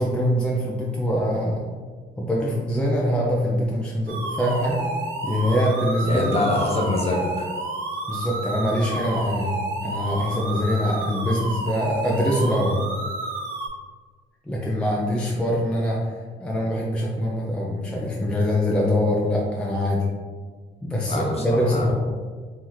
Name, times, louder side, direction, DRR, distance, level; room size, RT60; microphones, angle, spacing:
voice 1, 0.0-1.6 2.2-4.8 5.2-6.4 8.1-9.5 9.8-12.8 14.5-16.0 16.4-20.1 20.8-21.9, equal, 5° left, -4 dB, 0.5 m, -23 dB
sound 1, 4.1-13.7, right 2 dB, 90° right, 0.7 m, -30 dB
voice 2, 6.0-7.5 15.3-15.4 21.1-21.9, left 2 dB, 30° left, -1 dB, 0.9 m, -25 dB
3.1 x 2.8 x 3.8 m, 1.5 s
cardioid pair, 90°, 20 cm